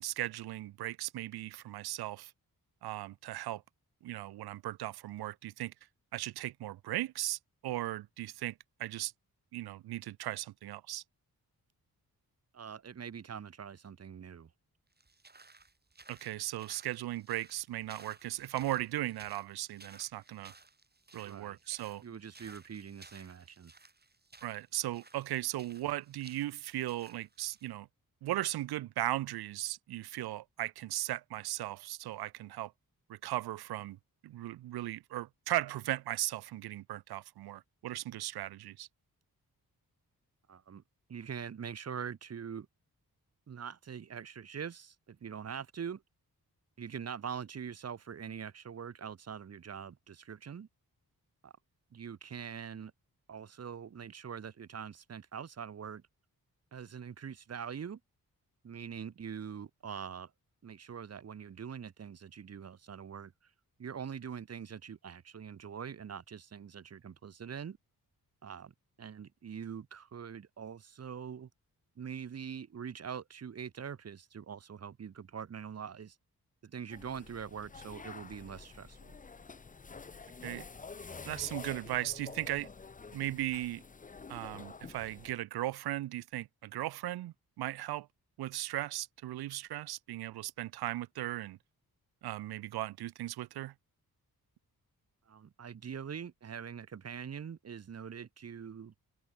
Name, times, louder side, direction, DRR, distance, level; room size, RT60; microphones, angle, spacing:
voice 1, 0.0-2.3 2.8-3.6 4.0-5.7 6.1-9.1 9.5-11.0 16.1-20.5 21.1-22.0 24.4-27.9 28.2-32.7 33.1-34.0 34.2-38.9 80.4-80.7 81.3-82.7 83.1-83.8 84.3-88.1 88.4-91.6 92.2-93.7, right 15 dB, 85° right, 0.5 m, -37 dB
voice 2, 12.5-14.5 21.2-21.6 22.0-23.7 40.5-40.8 41.1-42.7 43.5-46.0 46.8-50.7 51.4-51.5 51.9-52.9 53.3-56.0 56.7-58.0 58.6-60.3 60.6-63.3 63.8-67.8 68.4-68.7 69.0-71.5 72.0-76.2 76.6-79.1 95.3-98.9, right 7 dB, 45° right, 0.8 m, -43 dB
sound 1, 14.9-27.7, right 3 dB, 25° right, 2.1 m, -58 dB
sound 2, 76.9-85.3, left 4 dB, 20° left, 0.6 m, -48 dB
cardioid pair, 80°, 37 cm